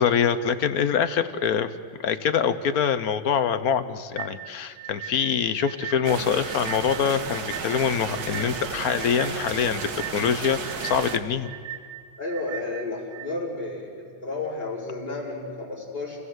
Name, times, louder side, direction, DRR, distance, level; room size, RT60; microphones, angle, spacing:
voice 1, 0.0-1.7 2.0-11.5, left 7 dB, 55° left, 11 dB, 1.2 m, -24 dB
sound 1, 4.2-13.3, right 11 dB, 70° right, 1.6 m, -39 dB
sound 2, 6.0-11.2, right 5 dB, 55° right, 1.8 m, -33 dB
voice 2, 12.2-16.2, left 2 dB, 20° left, -5 dB, 5.4 m, -32 dB
29.0 x 16.0 x 8.0 m, 2.2 s
omnidirectional pair, 2.2 m